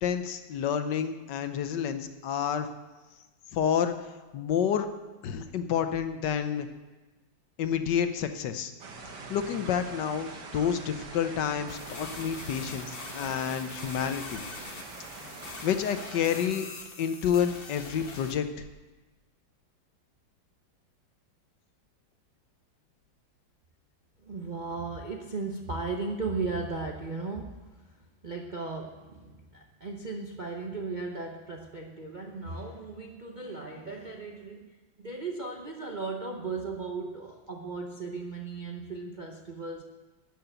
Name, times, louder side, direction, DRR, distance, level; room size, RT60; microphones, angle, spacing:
voice 1, 0.0-2.7 3.5-3.9 4.3-4.9 5.2-6.7 7.6-8.7 9.3-14.4 15.2-15.3 15.6-16.6 17.0-18.4, left 8 dB, 70° left, 9 dB, 1.4 m, -29 dB
sound 1, 8.8-16.5, right 4 dB, 65° right, 1.8 m, -44 dB
sound 2, 11.7-18.3, left 4 dB, 40° left, 1.0 m, -43 dB
voice 2, 24.2-27.9 28.2-39.8, right 3 dB, 45° right, 1 dB, 0.6 m, -36 dB
12.5 x 5.8 x 8.7 m, 1.2 s
omnidirectional pair, 2.0 m